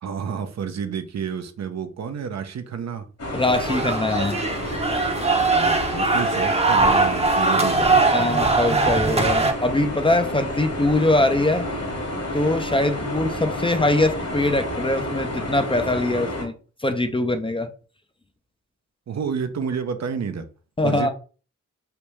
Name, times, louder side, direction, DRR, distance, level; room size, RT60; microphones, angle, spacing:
voice 1, 0.0-3.1 5.5-8.3 19.1-20.5 20.8-21.1, right 6 dB, 60° right, 0.6 m, -30 dB
sound 1, 3.2-16.5, left 1 dB, 50° left, 1.5 m, -30 dB
voice 2, 3.3-4.4 8.1-11.7 12.3-16.5 16.8-17.7 20.8-21.1, left 2 dB, 15° left, 0.5 m, -22 dB
sound 2, 3.5-9.5, right 3 dB, 20° right, 0.7 m, -21 dB
3.3 x 2.6 x 3.0 m
cardioid pair, 45°, 31 cm